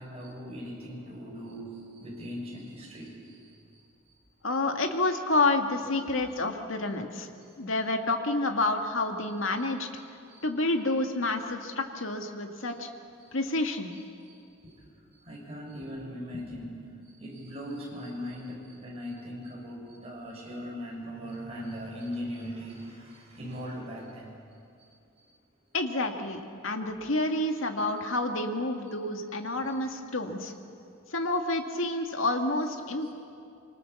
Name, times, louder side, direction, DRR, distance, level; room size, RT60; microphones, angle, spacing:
voice 1, 0.0-3.1 15.3-16.9 17.2-24.3, equal, 30° right, -4 dB, 7.1 m, -39 dB
voice 2, 4.4-7.3 7.6-9.9 10.4-12.9 13.3-13.9 25.7-30.5 31.1-33.1, left 2 dB, 70° left, 5 dB, 2.0 m, -29 dB
25.5 x 24.5 x 7.1 m, 2.6 s
head